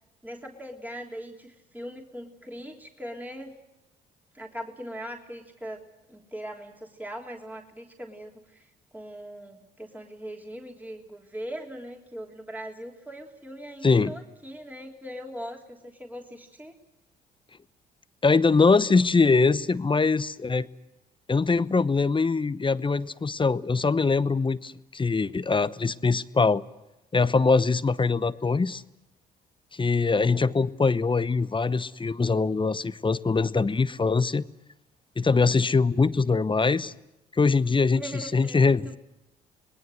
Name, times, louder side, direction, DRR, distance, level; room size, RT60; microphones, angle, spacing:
voice 1, 0.2-3.6 4.3-5.8 6.1-16.7 37.9-39.0, equal, 10° right, 3.4 m, -40 dB
voice 2, 18.2-20.7 21.3-26.6 27.1-28.8 29.7-34.4 35.2-36.9 37.4-39.0, left 4 dB, 25° left, 0.9 m, -23 dB
26.5 x 20.0 x 7.9 m
hypercardioid pair, 50°, 21 cm